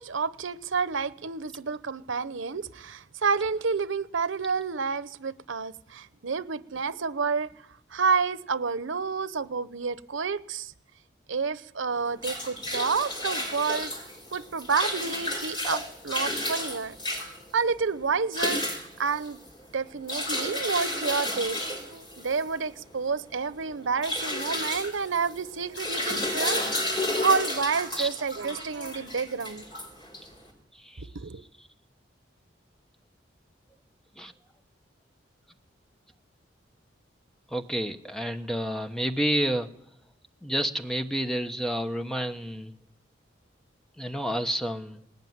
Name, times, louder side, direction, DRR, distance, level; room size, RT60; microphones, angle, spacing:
voice 1, 0.0-7.5 7.9-10.7 11.3-13.9 14.3-17.0 17.2-19.4 19.7-29.7 31.1-31.4, right 5 dB, 90° right, 0.9 m, -29 dB
sound 1, 11.9-30.5, left 1 dB, 25° left, 5.1 m, -32 dB
voice 2, 30.8-31.1 34.2-34.3 37.5-39.7 40.4-42.7 44.0-45.0, equal, ahead, 1.0 m, -29 dB
19.5 x 18.0 x 9.5 m
head